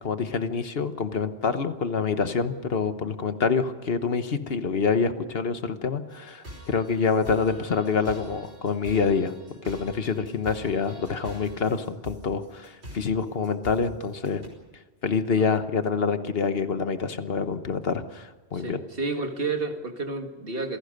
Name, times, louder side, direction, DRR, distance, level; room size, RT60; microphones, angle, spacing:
voice 1, 0.0-9.3 9.6-14.4 15.0-18.8, left 5 dB, 65° left, 10 dB, 1.3 m, -26 dB
sound 1, 6.1-14.5, right 1 dB, 75° right, 5.3 m, -44 dB
voice 2, 18.5-20.8, right 3 dB, 60° right, 5 dB, 2.1 m, -31 dB
27.0 x 17.0 x 6.6 m, 1.3 s
omnidirectional pair, 1.1 m